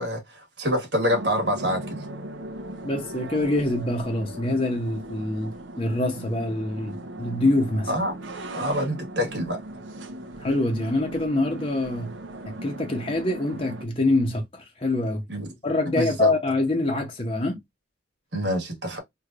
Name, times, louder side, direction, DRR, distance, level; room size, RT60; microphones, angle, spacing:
voice 1, 0.0-2.1 7.9-8.1 8.5-9.6 15.3-15.5 16.0-16.3 18.3-19.0, equal, 65° right, 1.3 m, -26 dB
sound 1, 1.1-13.9, right 1 dB, 85° right, 0.7 m, -38 dB
voice 2, 2.8-7.9 10.4-12.1 12.5-15.2 15.6-17.6, left 2 dB, 30° left, 0.7 m, -25 dB
3.1 x 2.7 x 2.4 m
head